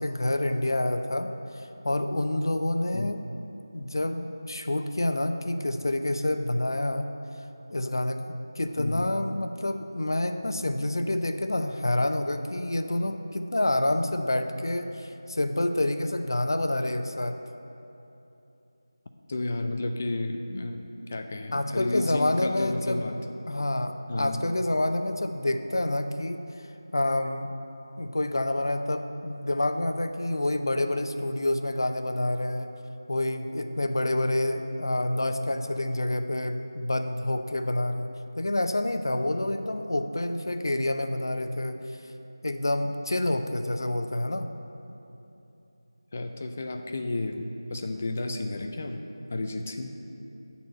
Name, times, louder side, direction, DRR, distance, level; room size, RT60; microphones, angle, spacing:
voice 1, 0.0-3.3 3.7-7.1 7.7-8.2 8.6-17.4 21.5-23.1 23.5-26.4 26.9-27.5 28.0-32.7 33.1-38.1 38.4-42.1 42.4-44.5, left 1 dB, 60° left, 7 dB, 0.7 m, -28 dB
voice 2, 8.8-9.1 19.3-20.8 21.1-23.2 24.1-24.4 46.1-49.0 49.3-50.0, left 2 dB, 25° left, 5 dB, 0.4 m, -32 dB
11.5 x 4.2 x 7.6 m, 2.9 s
figure-of-eight pair, 175°, 2 cm